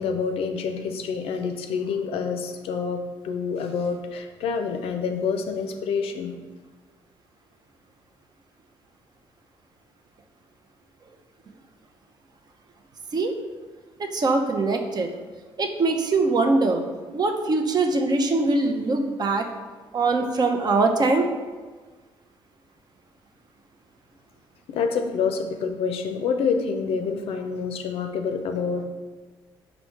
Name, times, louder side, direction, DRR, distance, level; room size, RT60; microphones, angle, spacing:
voice 1, 0.0-6.3 24.7-28.8, left 5 dB, 70° left, 6 dB, 0.5 m, -27 dB
voice 2, 14.0-15.1 15.6-16.8 17.1-19.5 19.9-21.3, right 3 dB, 40° right, 4 dB, 0.6 m, -22 dB
4.2 x 2.7 x 4.5 m, 1.3 s
supercardioid pair, 60°, 10 cm